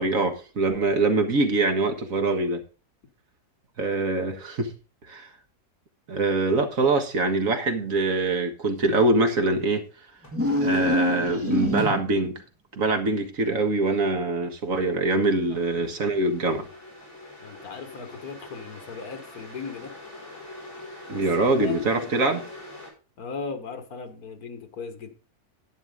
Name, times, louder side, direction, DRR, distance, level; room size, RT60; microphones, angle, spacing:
voice 1, 0.0-2.6 3.8-4.7 5.1-5.3 6.1-9.8 10.6-12.4 12.8-16.7 21.1-22.4, right 3 dB, 60° right, 1.9 m, -24 dB
sound 1, 7.6-7.8 10.2-11.2 11.8-11.9 15.1-22.9, left 2 dB, 50° left, 5.2 m, -44 dB
sound 2, 10.2-12.3, left 1 dB, 10° right, 2.3 m, -25 dB
voice 2, 15.4-15.9 17.4-19.9 21.1-21.2 21.5-22.1 23.2-25.1, left 5 dB, 75° left, 1.9 m, -37 dB
11.0 x 9.1 x 3.8 m
omnidirectional pair, 1.6 m